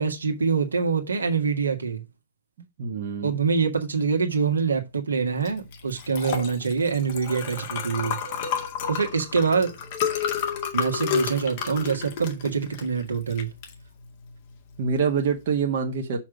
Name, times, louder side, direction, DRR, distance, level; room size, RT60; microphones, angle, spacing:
voice 1, 0.0-2.0 3.2-8.2 8.9-9.8 10.7-13.5, right 5 dB, 70° right, 1.8 m, -25 dB
voice 2, 2.8-3.3 14.8-16.2, right 6 dB, 45° right, 1.4 m, -25 dB
Liquid, 5.4-15.6, left 7 dB, 45° left, 2.1 m, -31 dB
6.3 x 5.8 x 5.0 m
figure-of-eight pair, 115°, 0 cm